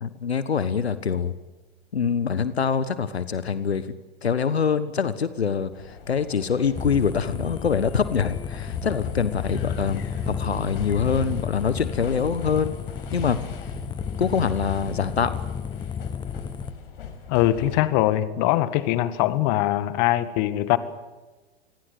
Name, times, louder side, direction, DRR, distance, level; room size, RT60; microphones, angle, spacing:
voice 1, 0.0-1.3 1.9-3.9 4.2-5.7 6.1-12.7 13.1-13.4 14.2-15.4, left 6 dB, 80° left, 14 dB, 1.3 m, -24 dB
sound 1, 5.7-17.8, left 6 dB, 65° left, 5.4 m, -40 dB
sound 2, 6.8-16.7, left 7 dB, 15° left, 1.2 m, -32 dB
voice 2, 17.3-20.8, left 15 dB, 45° left, 14 dB, 1.9 m, -22 dB
27.5 x 21.0 x 8.0 m, 1.2 s
figure-of-eight pair, 100°, 31 cm